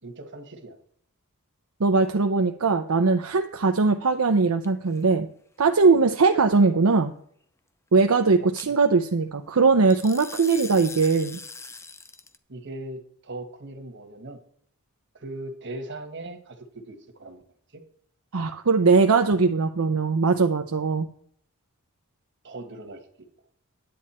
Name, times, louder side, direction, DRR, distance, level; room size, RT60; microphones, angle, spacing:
voice 1, 0.0-0.8 12.5-14.4 15.1-17.4 17.7-17.8 22.4-23.1, right 2 dB, 55° right, 6 dB, 1.5 m, -39 dB
voice 2, 1.8-5.3 5.6-7.1 7.9-11.4 18.3-21.1, right 4 dB, 75° right, 5 dB, 0.7 m, -20 dB
sound 1, 4.6-5.0 8.6-8.7 9.9-12.4, left 4 dB, 10° left, 0.6 m, -41 dB
10.5 x 8.6 x 4.3 m, 0.62 s
head